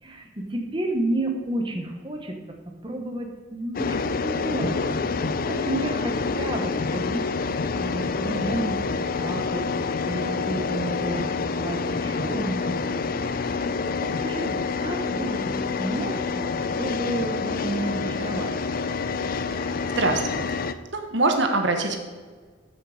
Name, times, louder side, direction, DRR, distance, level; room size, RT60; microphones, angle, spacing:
voice 1, 0.0-2.4 2.8-8.8 9.1-13.0 13.3-18.8, right 1 dB, 25° right, 2 dB, 1.2 m, -31 dB
sound 1, 3.7-20.7, left 4 dB, 50° left, 0.5 m, -27 dB
voice 2, 20.0-20.6 20.9-22.0, right 2 dB, 60° right, 5 dB, 1.2 m, -23 dB
13.5 x 6.3 x 5.0 m, 1.5 s
head